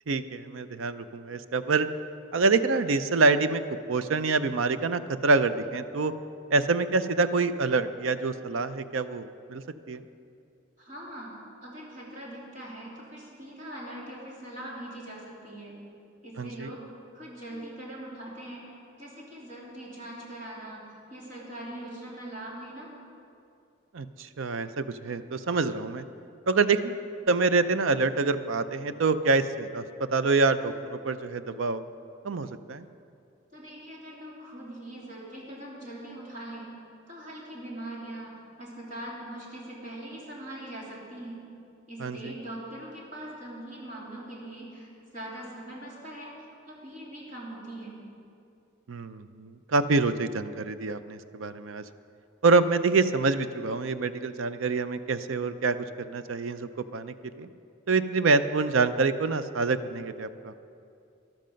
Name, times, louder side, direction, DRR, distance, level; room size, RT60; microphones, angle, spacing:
voice 1, 0.1-1.9 2.3-3.6 3.9-6.1 6.5-10.0 16.4-16.7 23.9-26.0 26.5-27.0 27.3-29.8 30.1-31.8 32.2-32.8 42.0-42.3 48.9-51.8 52.4-57.5 57.9-60.5, right 3 dB, 85° right, 12 dB, 0.5 m, -26 dB
voice 2, 10.8-11.3 11.6-15.7 16.2-16.8 17.1-20.8 21.1-22.9 33.5-36.7 37.1-38.3 38.6-41.4 41.9-46.3 46.6-47.9, right 1 dB, 40° right, -5 dB, 3.1 m, -41 dB
13.0 x 12.0 x 5.2 m, 2.5 s
head